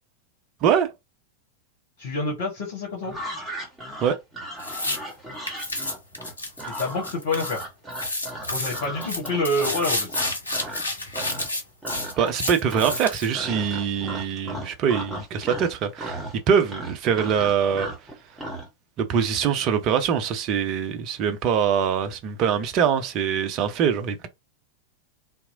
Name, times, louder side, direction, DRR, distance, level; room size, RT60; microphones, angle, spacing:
voice 1, 0.6-0.9 4.0-4.2 12.2-17.9 19.0-24.3, right 7 dB, 35° right, 0.5 m, -23 dB
voice 2, 2.0-3.1 6.8-7.7 8.5-10.1, left 2 dB, 55° left, 1.2 m, -27 dB
sound 1, 3.0-10.8 11.1-11.6 11.8-12.4 12.7-18.7, right 1 dB, 5° right, 1.1 m, -36 dB
sound 2, 4.6-5.0 5.5-7.6 7.9-13.3, left 2 dB, 80° left, 0.7 m, -30 dB
2.8 x 2.0 x 2.6 m
figure-of-eight pair, 90°, 0 cm